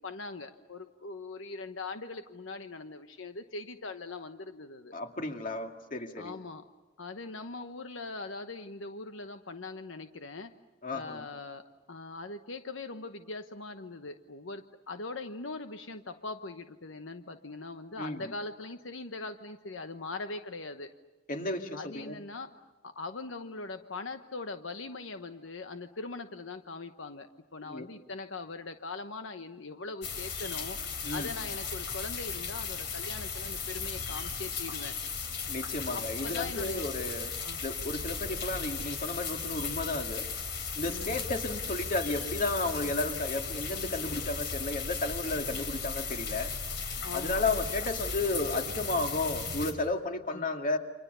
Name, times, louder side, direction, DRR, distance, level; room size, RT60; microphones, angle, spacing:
voice 1, 0.0-4.9 6.2-6.6 7.0-10.5 10.9-20.9 21.7-22.5 22.8-30.8 31.1-35.0 35.9-36.9 37.4-37.6 40.8-41.3 42.8-43.0 45.5-45.6 47.0-47.5 50.3-50.5, left 3 dB, 85° left, 8 dB, 1.1 m, -41 dB
voice 2, 4.9-6.4 10.8-11.2 18.0-18.2 21.3-22.2 27.6-27.8 31.0-31.3 35.5-37.3 37.6-40.3 40.8-46.5 47.1-50.8, left 2 dB, 45° left, 4 dB, 2.4 m, -33 dB
sound 1, 30.0-49.7, left 5 dB, 65° left, 3.7 m, -36 dB
29.5 x 26.0 x 6.9 m, 1.2 s
head